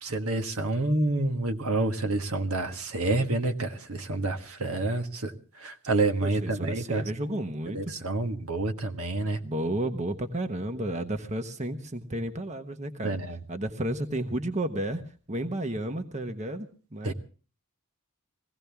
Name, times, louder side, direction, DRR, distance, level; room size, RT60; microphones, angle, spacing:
voice 1, 0.0-5.3 5.6-7.0 7.7-9.4 13.0-13.4 17.0-17.1, right 2 dB, 75° right, 1.5 m, -28 dB
voice 2, 6.2-8.1 9.4-13.2 13.5-15.0 15.3-17.1, right 1 dB, 35° right, 1.2 m, -32 dB
22.5 x 16.5 x 3.5 m
head